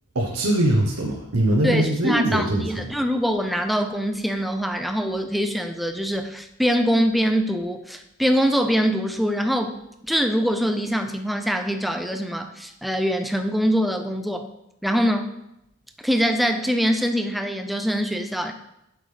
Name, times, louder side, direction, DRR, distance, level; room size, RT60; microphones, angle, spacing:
voice 1, 0.1-2.9, right 1 dB, 80° right, -2 dB, 1.0 m, -22 dB
voice 2, 1.6-9.8 10.1-14.5 14.8-15.3 16.0-18.5, equal, ahead, 6 dB, 0.4 m, -23 dB
8.3 x 6.2 x 3.4 m, 0.86 s
head